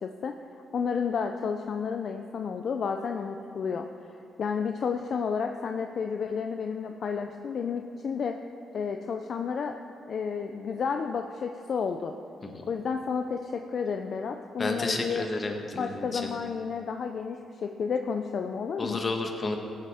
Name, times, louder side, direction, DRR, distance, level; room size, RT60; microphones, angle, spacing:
voice 1, 0.0-0.3 0.7-3.9 4.1-8.4 8.7-9.7 10.1-12.1 12.7-15.3 15.8-19.0, left 6 dB, 55° left, 5 dB, 0.5 m, -31 dB
voice 2, 14.6-16.3 18.8-19.6, left 2 dB, 35° left, 3 dB, 1.5 m, -31 dB
16.5 x 8.6 x 3.6 m, 2.8 s
cardioid pair, 95°, 0 cm